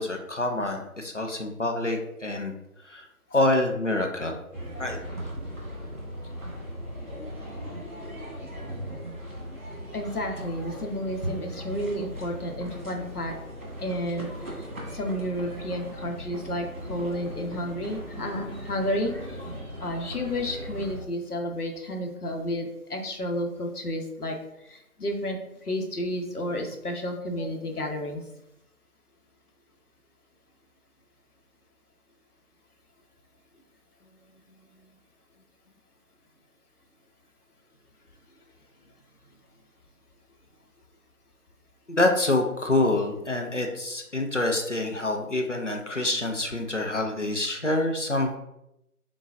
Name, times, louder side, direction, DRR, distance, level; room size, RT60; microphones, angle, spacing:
voice 1, 0.0-2.5 2.9-3.0 3.3-4.4 4.8-5.0 27.4-27.5 41.9-48.4, left 2 dB, 55° left, 2 dB, 0.6 m, -26 dB
sound 1, 4.5-21.0, equal, 60° right, 1.5 m, -38 dB
voice 2, 9.9-13.3 13.8-14.7 14.9-19.4 19.8-28.2, equal, 80° left, 3 dB, 0.9 m, -31 dB
4.0 x 3.8 x 2.5 m, 0.83 s
figure-of-eight pair, 175°, 45 cm